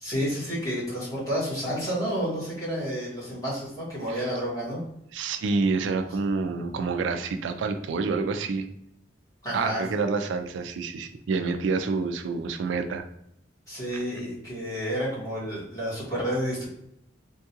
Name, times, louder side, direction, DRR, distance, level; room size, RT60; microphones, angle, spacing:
voice 1, 0.0-4.8 9.4-9.8 13.7-16.7, equal, 20° left, -8 dB, 1.5 m, -30 dB
voice 2, 5.1-8.7 9.5-13.1, right 4 dB, 80° right, 8 dB, 0.3 m, -28 dB
3.6 x 2.3 x 2.7 m, 0.76 s
head